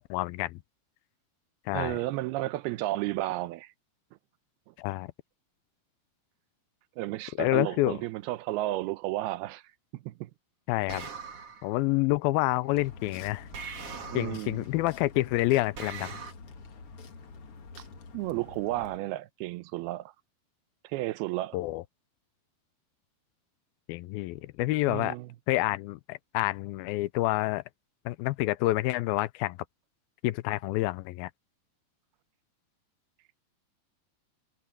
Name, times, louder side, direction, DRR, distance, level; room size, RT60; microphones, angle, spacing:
voice 1, 0.1-0.6 1.7-2.0 4.8-5.1 7.4-8.0 10.7-11.1 11.6-13.5 14.1-16.2 21.5-21.8 23.9-25.2 25.5-27.6 28.1-29.6 30.2-31.3, left 18 dB, 80° left, 2.4 m, -28 dB
voice 2, 1.7-3.7 7.0-9.6 9.9-10.3 14.1-14.6 18.1-20.1 20.8-21.6 24.9-25.3, right 17 dB, 90° right, 2.7 m, -32 dB
sound 1, 10.9-11.7 13.5-14.6 15.7-16.3, right 5 dB, 40° right, 3.1 m, -41 dB
sound 2, 12.7-19.0, left 4 dB, 45° left, 2.2 m, -47 dB
omnidirectional pair, 4.4 m